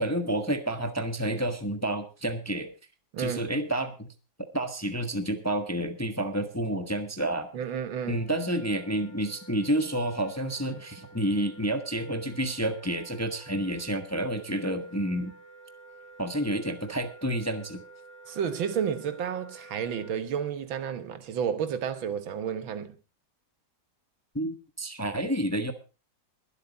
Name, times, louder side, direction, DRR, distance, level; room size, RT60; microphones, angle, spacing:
voice 1, 0.0-2.7 3.2-4.1 4.5-7.5 8.1-15.3 16.2-17.8 24.3-25.7, right 1 dB, 10° left, 0.9 m, -29 dB
voice 2, 3.1-3.5 7.5-8.3 18.3-23.0, right 8 dB, 90° right, 2.0 m, -31 dB
Wind instrument woodwind instrument, 7.9-20.1, right 3 dB, 70° right, 3.9 m, -51 dB
22.0 x 8.2 x 4.0 m
omnidirectional pair, 2.1 m